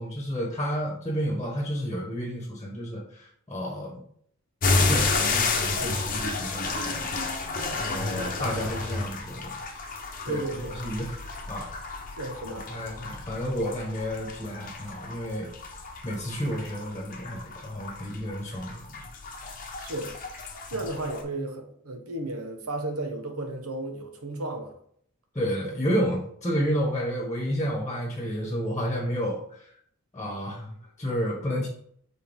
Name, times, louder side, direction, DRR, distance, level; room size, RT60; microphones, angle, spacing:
voice 1, 0.0-4.0 4.8-9.5 10.3-11.2 11.5-11.7 12.4-15.7 16.0-19.0 20.7-20.8 25.3-29.6 30.1-31.7, equal, 15° left, 1.4 m, -31 dB
sound 1, 4.6-21.2, left 3 dB, 40° left, 0.9 m, -31 dB
voice 2, 10.3-10.8 12.2-12.9 19.8-20.1 20.7-24.7, right 2 dB, 75° right, 1.2 m, -34 dB
6.7 x 4.2 x 3.7 m
head